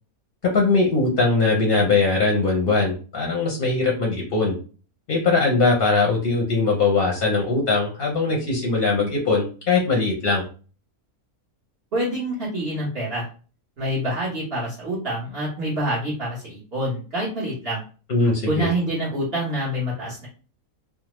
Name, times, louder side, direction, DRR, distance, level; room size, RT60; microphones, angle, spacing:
voice 1, 0.4-4.6 5.1-10.4 18.1-18.7, left 3 dB, 50° left, -1 dB, 0.8 m, -21 dB
voice 2, 11.9-13.3 13.8-17.8 18.5-20.3, right 1 dB, 45° right, -7 dB, 1.2 m, -26 dB
3.3 x 2.0 x 3.0 m, 0.37 s
omnidirectional pair, 1.5 m